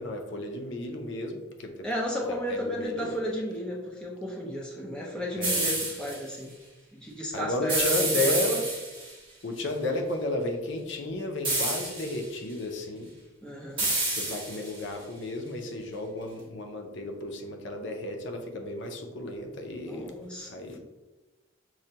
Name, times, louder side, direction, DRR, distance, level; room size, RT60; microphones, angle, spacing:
voice 1, 0.0-1.8 2.3-3.1 5.4-5.7 7.3-8.6 9.4-13.1 14.1-20.8, left 1 dB, 60° left, 4 dB, 0.5 m, -33 dB
voice 2, 1.8-6.5 6.9-8.6 13.4-13.9 19.9-20.8, equal, 5° left, -3 dB, 0.6 m, -34 dB
sound 1, 5.4-6.2 7.7-9.1 11.4-12.2 13.8-14.8, right 2 dB, 25° right, 1.1 m, -28 dB
6.2 x 2.2 x 2.7 m, 1.1 s
head